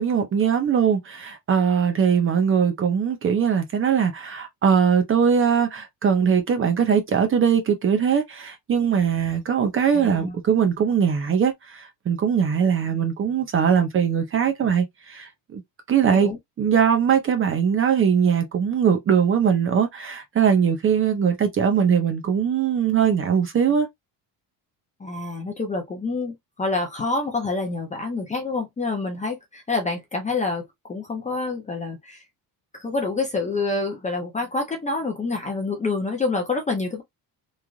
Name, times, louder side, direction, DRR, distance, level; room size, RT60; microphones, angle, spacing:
voice 1, 0.0-15.6 15.9-23.9, right 7 dB, 30° right, 0.6 m, -21 dB
voice 2, 9.9-10.4 16.1-16.4 25.0-32.2 32.7-37.0, left 3 dB, 15° left, 0.5 m, -27 dB
3.1 x 2.4 x 2.4 m
cardioid pair, 170°, 42 cm